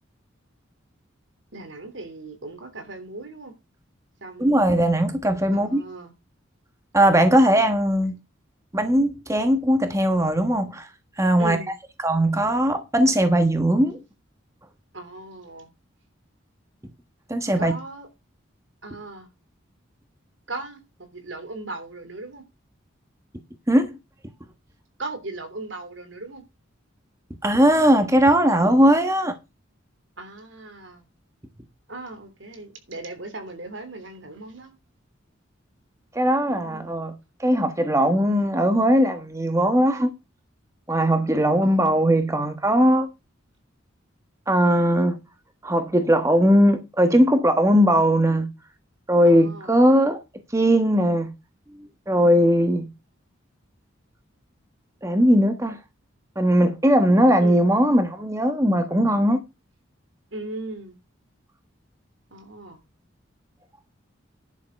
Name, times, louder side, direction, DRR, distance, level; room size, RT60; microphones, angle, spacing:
voice 1, 1.5-3.5 4.2-4.5 5.5-6.1 11.4-11.7 14.9-15.7 17.6-18.1 18.8-19.3 20.5-20.8 21.1-22.4 25.0-26.4 30.2-31.1 31.9-34.7 36.5-37.1 41.6-41.9 49.2-49.7 57.4-57.7 60.3-61.0 62.3-62.8, right 2 dB, 70° right, 3.2 m, -37 dB
voice 2, 4.4-5.8 6.9-8.2 8.7-10.9 11.2-11.6 12.0-14.0 17.3-17.7 23.7-24.0 27.4-29.4 36.1-37.1 37.4-40.1 40.9-43.1 44.5-45.2 45.6-48.5 49.1-50.2 50.5-51.3 52.1-52.9 55.0-55.8 56.3-59.4, equal, 15° right, 1.2 m, -19 dB
11.0 x 7.1 x 5.3 m
head